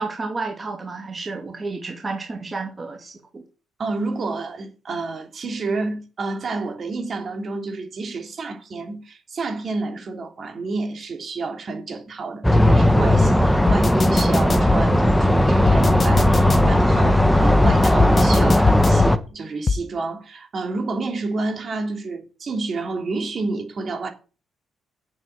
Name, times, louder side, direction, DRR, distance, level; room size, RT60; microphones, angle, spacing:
voice 1, 0.0-3.4, right 3 dB, 25° right, 2.4 m, -31 dB
voice 2, 3.8-24.1, right 3 dB, 45° right, 3.0 m, -29 dB
sound 1, 12.4-19.2, left 1 dB, 5° left, 1.1 m, -17 dB
sound 2, 12.7-12.8 13.7-14.8 15.7-16.8 17.7-19.1 19.7-19.8, left 4 dB, 35° left, 0.8 m, -22 dB
8.1 x 7.9 x 8.9 m
cardioid pair, 90°, 0 cm